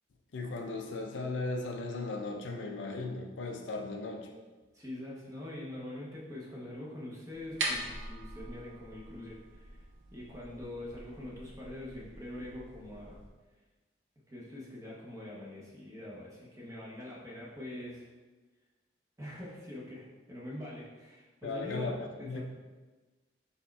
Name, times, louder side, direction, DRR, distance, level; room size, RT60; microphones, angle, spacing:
voice 1, 0.3-4.3 21.4-22.4, left 3 dB, 80° left, 3 dB, 0.5 m, -37 dB
voice 2, 4.7-13.2 14.3-18.1 19.2-22.4, left 1 dB, 15° right, -4 dB, 0.7 m, -44 dB
sound 1, 7.3-13.3, right 2 dB, 75° right, 0.6 m, -42 dB
4.2 x 4.1 x 2.3 m, 1.2 s
head